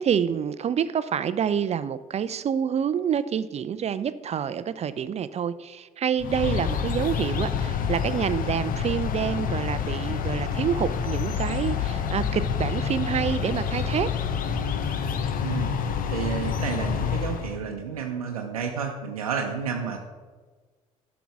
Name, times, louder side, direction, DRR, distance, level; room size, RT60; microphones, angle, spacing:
voice 1, 0.0-14.1, right 8 dB, 35° right, 14 dB, 0.5 m, -27 dB
sound 1, 6.2-17.6, left 7 dB, 50° left, 1.0 m, -28 dB
voice 2, 15.4-15.7 16.1-20.0, right 6 dB, 85° right, 2 dB, 0.7 m, -30 dB
11.5 x 6.1 x 4.7 m, 1.4 s
hypercardioid pair, 55°, 18 cm